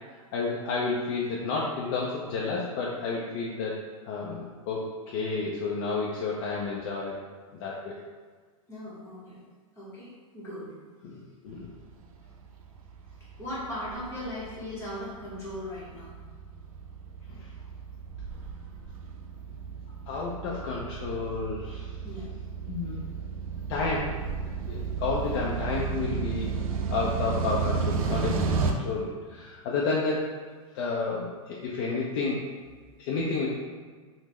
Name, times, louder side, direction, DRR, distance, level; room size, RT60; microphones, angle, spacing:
voice 1, 0.3-3.8 4.0-7.1 7.6-7.9 11.0-11.2 11.4-11.7 17.3-17.5 20.1-21.9 22.7-23.0 23.7-24.1 24.6-26.5 26.9-30.2 30.7-32.4 33.0-33.5, left 4 dB, 45° left, -4 dB, 0.4 m, -31 dB
voice 2, 8.7-9.4 9.8-10.7 13.4-16.1 22.0-22.3, left 1 dB, 15° left, -8 dB, 0.9 m, -38 dB
sound 1, 11.7-28.7, right 5 dB, 80° right, 0.4 m, -33 dB
3.5 x 2.0 x 3.0 m, 1.5 s
supercardioid pair, 155°, 18 cm